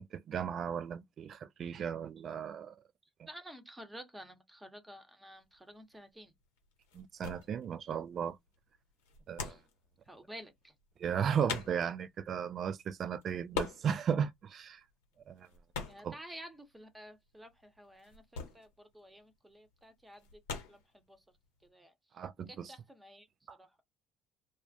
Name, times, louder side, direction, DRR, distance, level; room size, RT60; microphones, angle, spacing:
voice 1, 0.0-2.7 3.2-3.3 6.9-8.4 9.3-9.6 11.0-14.8 15.3-15.5 16.0-16.2 22.2-22.7 23.5-23.6, right 7 dB, 50° right, 0.3 m, -35 dB
voice 2, 3.3-6.3 9.4-9.6 10.1-10.7 15.9-18.2 18.5-20.4 20.7-21.2 21.6-21.9 22.5-23.7, equal, 15° right, 0.8 m, -51 dB
sound 1, 5.4-21.7, left 5 dB, 80° left, 0.9 m, -45 dB
2.3 x 2.1 x 2.6 m
hypercardioid pair, 60°, 0 cm